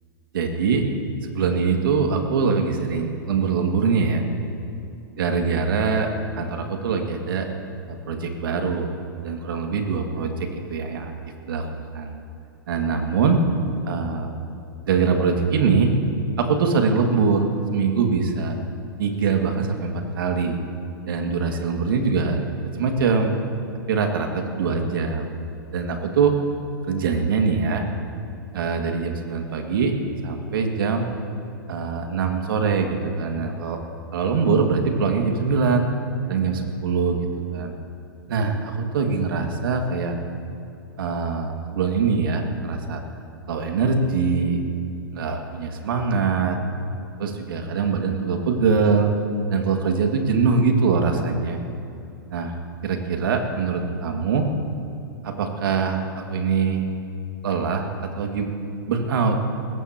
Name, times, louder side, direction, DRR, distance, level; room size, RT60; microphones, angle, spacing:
voice 1, 0.3-0.8 1.2-4.2 5.2-7.5 7.9-8.9 9.2-11.2 11.5-11.6 11.9-12.2 12.7-13.4 13.9-14.3 14.8-15.9 16.4-18.6 19.0-20.6 21.1-22.4 22.7-23.3 23.9-25.3 25.7-26.4 26.9-27.8 28.5-29.9 30.2-31.1 31.7-33.8 34.1-35.9 36.2-37.2 37.5-37.7 38.3-40.2 41.0-43.0 43.5-44.6 45.1-46.6 47.2-49.1 49.5-51.6 52.3-52.5 52.8-54.5 55.2-56.0 56.3-56.8 57.4-57.9 58.1-58.5 58.9-59.4, right 5 dB, 70° right, 3 dB, 2.2 m, -23 dB
21.0 x 17.0 x 3.0 m, 2.7 s
hypercardioid pair, 110°, 12 cm